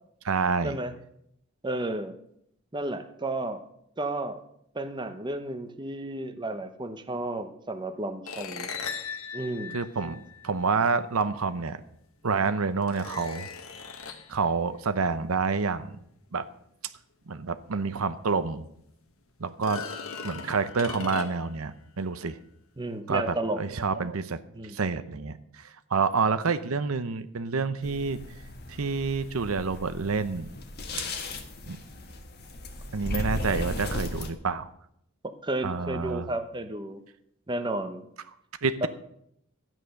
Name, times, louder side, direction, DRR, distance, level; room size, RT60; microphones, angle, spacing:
voice 1, 0.2-0.8 9.7-11.8 12.2-13.5 14.3-16.0 16.3-16.4 17.3-18.6 19.4-19.8 20.2-22.4 23.1-24.4 24.6-28.2 28.7-30.5 31.7-31.8 32.9-34.7 35.6-36.3 38.6-38.9, right 4 dB, 80° right, 11 dB, 0.8 m, -28 dB
voice 2, 1.6-2.1 2.7-3.6 4.0-4.4 4.7-8.7 9.3-9.8 22.8-23.6 24.5-24.8 35.4-37.0 37.5-38.0 38.8-38.9, right 2 dB, 20° right, 8 dB, 0.9 m, -32 dB
sound 1, 8.3-10.7 11.9-12.0 12.8-14.4 17.7-17.8 18.2-18.3 19.5-21.6, left 5 dB, 75° left, 1.5 m, -38 dB
sound 2, 27.8-34.3, left 1 dB, 50° left, 1.5 m, -36 dB
12.5 x 9.1 x 6.5 m, 0.74 s
head